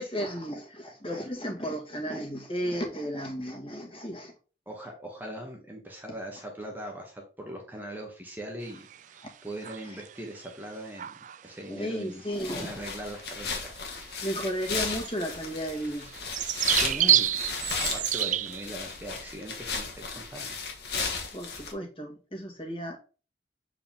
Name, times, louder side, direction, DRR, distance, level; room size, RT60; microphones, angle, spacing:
voice 1, 0.0-4.3 9.8-10.0 11.7-12.8 14.2-16.1 16.6-16.7 21.3-23.0, equal, 30° left, 1 dB, 2.1 m, -34 dB
voice 2, 4.7-11.1 11.4-12.2 12.5-13.7 16.7-17.4 17.7-20.6, right 1 dB, 10° right, 1 dB, 1.2 m, -40 dB
sound 1, 8.7-9.2 9.6-10.2 10.4-10.5 11.0-11.4 12.5-12.7 13.0-13.1 13.8-14.0 14.3-14.4 14.8-18.7, right 12 dB, 45° right, 0.3 m, -28 dB
sound 2, 12.3-21.7, left 5 dB, 70° left, 1.9 m, -35 dB
7.2 x 4.8 x 3.6 m, 0.35 s
head